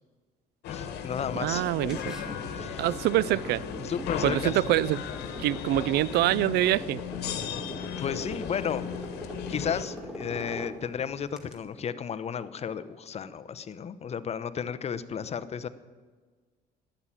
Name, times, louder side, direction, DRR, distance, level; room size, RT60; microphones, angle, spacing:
sound 1, 0.6-9.9, left 8 dB, 75° left, 1.6 m, -36 dB
voice 1, 0.7-1.7 2.5-2.9 3.8-4.7 8.0-9.1 9.5-15.7, left 7 dB, 40° left, 0.8 m, -33 dB
sound 2, 1.2-11.6, equal, 5° right, 2.2 m, -42 dB
voice 2, 1.3-2.2 2.8-3.6 4.2-5.0 5.4-7.0, right 15 dB, 75° right, 0.4 m, -25 dB
11.5 x 9.9 x 8.9 m
cardioid pair, 110°, 17 cm